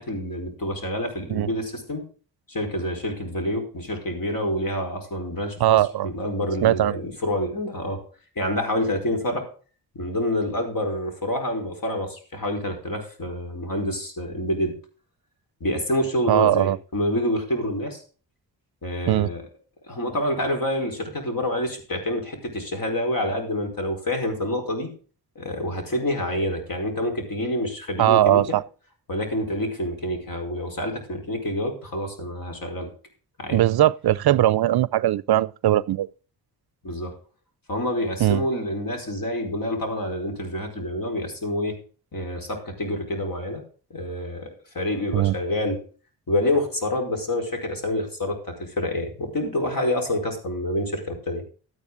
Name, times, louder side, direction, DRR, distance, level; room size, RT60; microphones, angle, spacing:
voice 1, 0.0-2.0 2.5-8.0 8.4-9.4 9.9-14.8 15.6-18.0 18.8-19.4 19.8-24.9 25.3-28.6 29.1-32.9 33.4-33.6 36.8-37.1 37.7-41.8 42.1-43.6 43.9-45.8 46.3-51.4, left 1 dB, 55° left, 4.6 m, -27 dB
voice 2, 5.6-6.1 6.6-7.0 16.3-16.8 19.1-19.3 28.0-28.6 33.5-36.1 38.2-38.4 45.1-45.3, right 13 dB, 65° right, 0.5 m, -20 dB
12.5 x 9.7 x 3.8 m
cardioid pair, 60°, 40 cm